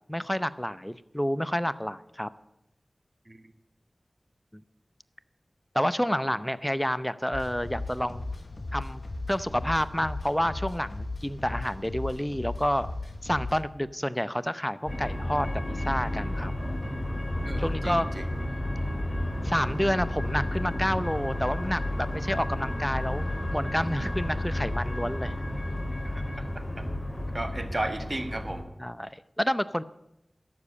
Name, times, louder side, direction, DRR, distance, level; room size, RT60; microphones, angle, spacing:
voice 1, 0.1-2.3 5.7-8.2 8.7-9.0 9.3-12.9 13.2-16.5 17.6-18.1 19.4-23.3 23.5-25.3 28.8-29.8, equal, 10° left, 15 dB, 0.6 m, -29 dB
sound 1, 7.3-13.6, left 2 dB, 60° left, 1.1 m, -37 dB
sound 2, 14.9-28.6, left 1 dB, 25° left, 3.2 m, -31 dB
voice 2, 17.4-18.3 26.0-26.8 27.3-28.6, right 1 dB, 35° right, 8 dB, 1.5 m, -35 dB
12.0 x 7.3 x 8.4 m, 0.85 s
wide cardioid pair, 40°, 0 cm